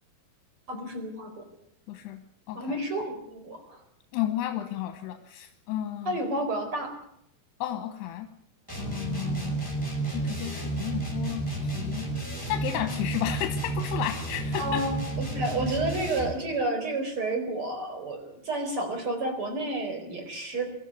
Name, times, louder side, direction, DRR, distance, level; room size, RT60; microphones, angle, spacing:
voice 1, 0.7-1.4 2.5-3.8 6.0-6.9 14.6-14.9 15.3-20.6, right 2 dB, 35° right, 5 dB, 5.0 m, -30 dB
voice 2, 1.9-2.2 2.5-2.8 4.1-6.1 7.6-8.3 8.8-9.6 10.1-12.1 12.5-14.8, left 12 dB, 85° left, 6 dB, 3.3 m, -33 dB
sound 1, 8.7-16.4, right 2 dB, 5° right, 5.7 m, -31 dB
23.5 x 13.5 x 9.7 m, 0.74 s
omnidirectional pair, 4.7 m